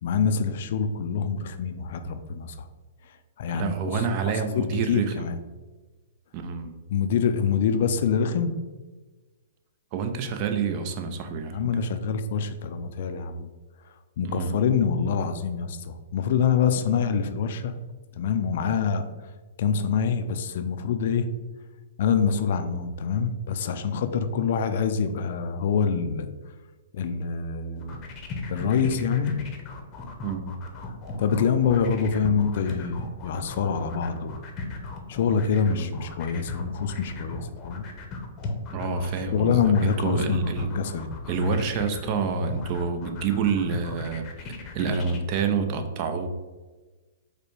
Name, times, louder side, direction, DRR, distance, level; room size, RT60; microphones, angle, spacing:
voice 1, 0.0-2.6 3.4-4.0 4.5-5.4 6.9-8.6 11.5-13.5 14.2-17.7 18.2-19.0 19.6-21.3 22.0-26.3 26.9-28.1 28.5-29.4 31.2-34.4 35.1-37.8 39.3-41.1, left 6 dB, 60° left, 9 dB, 0.4 m, -25 dB
voice 2, 3.5-5.3 6.3-6.8 9.9-11.9 14.2-14.6 30.2-30.6 35.7-35.9 38.7-40.7 41.3-46.3, right 5 dB, 40° right, 7 dB, 0.5 m, -28 dB
sound 1, 27.7-45.2, left 3 dB, 30° left, 0.7 m, -37 dB
4.9 x 2.2 x 4.6 m, 1.3 s
hypercardioid pair, 135°, 0 cm